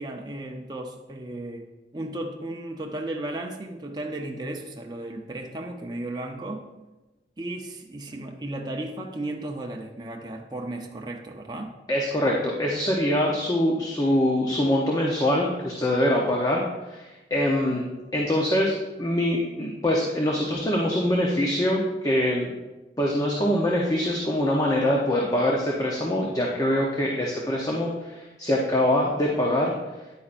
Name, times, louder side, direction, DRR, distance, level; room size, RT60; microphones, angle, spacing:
voice 1, 0.0-6.7 7.4-11.7 17.7-17.8, right 1 dB, 25° right, 1 dB, 0.6 m, -35 dB
voice 2, 11.9-16.6 16.9-17.9 18.1-18.7 19.0-22.5 23.0-29.7, left 1 dB, 20° left, -2 dB, 0.8 m, -24 dB
9.9 x 8.5 x 2.6 m, 1.1 s
head